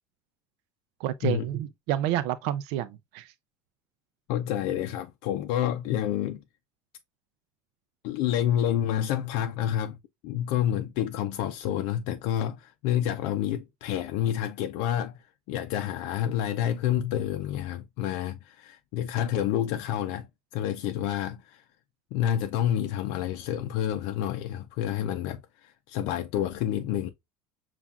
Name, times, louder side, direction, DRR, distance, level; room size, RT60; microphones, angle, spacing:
voice 1, 1.0-3.3, right 12 dB, 80° right, 0.4 m, -29 dB
voice 2, 4.3-6.4 8.0-10.0 10.2-20.3 20.5-21.6 22.1-27.1, left 11 dB, 75° left, 0.5 m, -29 dB
7.1 x 2.4 x 2.3 m
cardioid pair, 140°, 9 cm